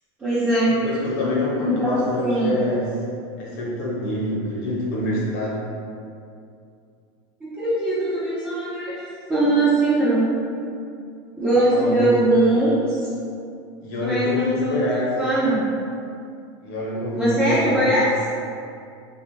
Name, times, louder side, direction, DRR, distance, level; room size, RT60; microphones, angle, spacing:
voice 1, 0.2-0.7 1.6-2.6 7.4-8.9 9.3-10.3 11.4-13.0 14.0-14.9 15.2-15.6 17.2-18.1, right 1 dB, 10° right, -11 dB, 0.4 m, -20 dB
voice 2, 0.8-2.9 3.4-5.6 11.7-12.2 13.8-15.2 16.6-18.0, left 1 dB, 55° left, -5 dB, 0.8 m, -26 dB
2.5 x 2.4 x 3.0 m, 2.4 s
supercardioid pair, 155°, 14 cm